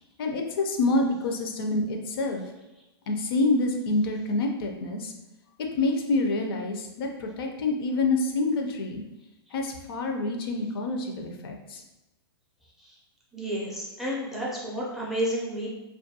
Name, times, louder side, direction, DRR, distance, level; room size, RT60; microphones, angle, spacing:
voice 1, 0.2-2.4 3.1-5.1 5.6-9.0 9.5-11.8, left 2 dB, 65° left, 2 dB, 0.4 m, -27 dB
voice 2, 13.3-15.7, equal, 5° right, -6 dB, 0.4 m, -31 dB
2.3 x 2.2 x 2.7 m, 1.0 s
hypercardioid pair, 140°, 13 cm